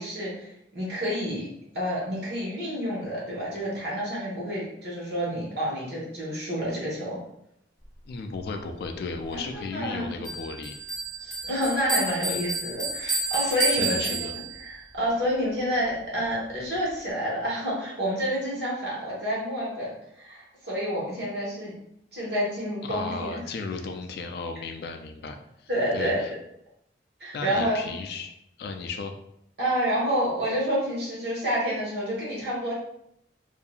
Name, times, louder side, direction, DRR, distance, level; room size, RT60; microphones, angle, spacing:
voice 1, 0.0-1.5 1.7-7.2 9.3-9.4 9.7-10.0 11.2-21.7 22.1-23.4 25.7-26.2 27.2-27.8 29.6-32.7, equal, 65° right, -6 dB, 1.2 m, -29 dB
voice 2, 8.1-10.7 13.7-14.3 22.8-26.3 27.3-28.3 28.6-29.1, left 4 dB, 60° left, 5 dB, 0.3 m, -35 dB
Bell, 10.2-14.8, right 3 dB, ahead, 1.4 m, -30 dB
2.7 x 2.4 x 2.3 m, 0.75 s
head